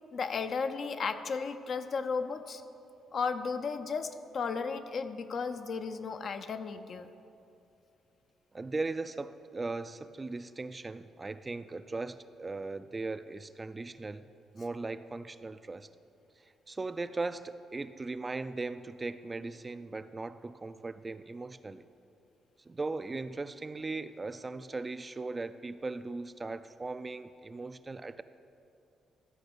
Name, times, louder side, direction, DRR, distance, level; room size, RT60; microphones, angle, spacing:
voice 1, 0.1-2.6 3.1-7.1, left 5 dB, 55° left, 8 dB, 0.6 m, -34 dB
voice 2, 8.5-14.2 14.5-15.9 16.4-21.9 22.7-28.2, right 3 dB, 25° right, 12 dB, 0.4 m, -38 dB
13.5 x 5.1 x 8.0 m, 2.6 s
cardioid pair, 90°, 0 cm